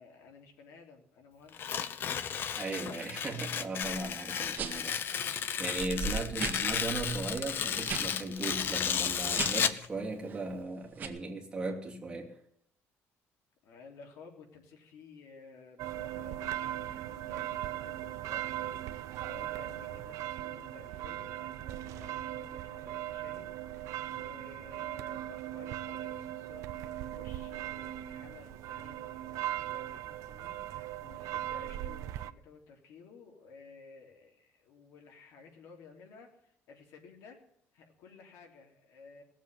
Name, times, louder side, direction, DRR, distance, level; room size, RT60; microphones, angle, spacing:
voice 1, 0.0-2.1 6.1-6.6 13.6-37.4 37.7-39.2, left 5 dB, 85° left, 2 dB, 3.4 m, -55 dB
Tearing, 1.5-9.9, left 8 dB, 45° left, 0.8 m, -33 dB
voice 2, 2.6-5.3 5.6-12.3, right 2 dB, 15° right, -2 dB, 2.8 m, -37 dB
sound 1, 3.8-4.0 4.5-4.9 5.4-5.5 5.8-8.1 8.4-8.6 9.2-9.7 10.2-10.5 11.0-11.1, right 5 dB, 35° right, 1.7 m, -38 dB
sound 2, 15.8-32.3, right 13 dB, 85° right, 0.6 m, -39 dB
18.5 x 7.4 x 9.2 m, 0.69 s
cardioid pair, 165°, 5 cm